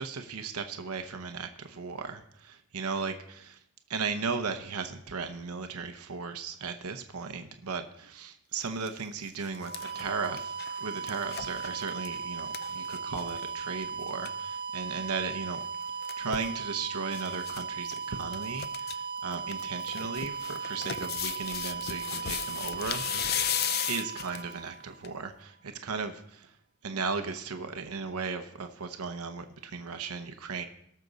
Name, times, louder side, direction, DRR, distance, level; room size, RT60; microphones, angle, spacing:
voice 1, 0.0-3.6 3.9-10.5 10.8-15.6 16.2-23.0 23.9-26.5 26.8-30.6, right 5 dB, 85° right, 7 dB, 0.8 m, -36 dB
sound 1, 8.6-8.9 9.3-13.5 13.8-13.9 14.1-14.3 15.6-16.5 17.1-17.6 17.9-18.0 18.3-18.9 19.3-24.5 25.0-25.1, left 10 dB, 45° left, 0.5 m, -36 dB
sound 2, 9.5-25.3, right 5 dB, 25° right, 1.0 m, -37 dB
18.5 x 6.7 x 4.0 m, 0.73 s
head